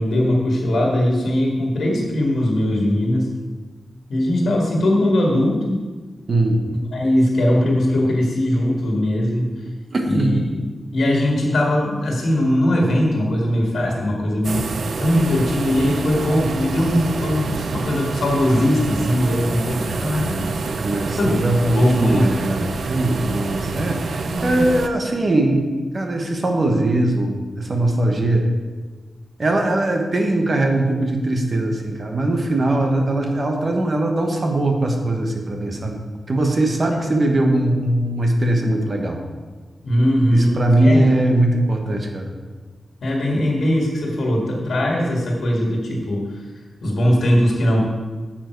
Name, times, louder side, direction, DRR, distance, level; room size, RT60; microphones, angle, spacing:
voice 1, 0.0-3.3 4.1-5.8 6.9-9.5 10.0-10.6 10.9-14.6 15.0-20.5 21.2-21.4 21.7-22.3 24.2-24.6 37.0-37.1 39.8-41.0 43.0-46.4 46.8-47.8, left 1 dB, 65° left, -2 dB, 2.0 m, -20 dB
voice 2, 6.3-6.6 9.9-10.3 19.8-25.6 25.9-28.5 29.4-36.0 36.3-39.2 40.3-42.3, right 1 dB, 35° right, 2 dB, 1.2 m, -20 dB
sound 1, 14.4-24.9, right 4 dB, 70° right, 0.6 m, -27 dB
9.8 x 7.3 x 4.7 m, 1.4 s
wide cardioid pair, 175°, 0 cm